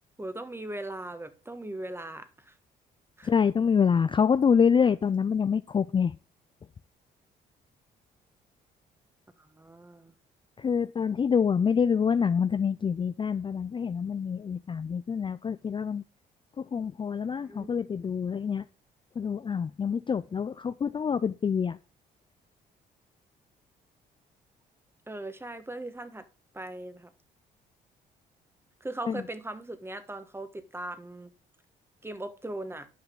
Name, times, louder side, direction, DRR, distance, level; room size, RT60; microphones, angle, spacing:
voice 1, 0.2-2.5 3.2-3.3 9.4-10.1 17.5-17.7 25.1-26.3 26.5-27.1 28.8-31.3 32.0-32.9, right 1 dB, 15° right, 1.4 m, -39 dB
voice 2, 3.2-6.2 10.6-16.0 16.6-18.7 19.2-21.8 29.1-29.2, left 6 dB, 30° left, 0.4 m, -26 dB
10.0 x 5.7 x 3.7 m
supercardioid pair, 65°, 18 cm